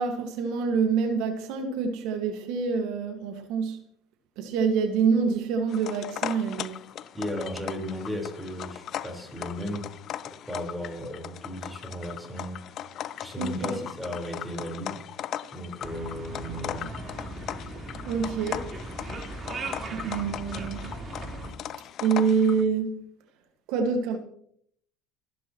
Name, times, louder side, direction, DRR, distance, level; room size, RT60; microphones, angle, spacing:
voice 1, 0.0-3.8 4.4-6.8 13.4-13.8 18.1-18.7 19.9-20.9 22.0-23.0 23.7-24.2, right 5 dB, 70° right, 1.8 m, -26 dB
sound 1, 5.7-22.6, left 11 dB, 50° left, 0.7 m, -38 dB
voice 2, 7.1-9.9 10.2-12.8 13.2-15.0 15.5-16.9, equal, 5° right, 4.4 m, -35 dB
sound 2, 15.8-21.5, right 2 dB, 30° right, 4.0 m, -38 dB
30.0 x 10.5 x 3.1 m
supercardioid pair, 110°, 0 cm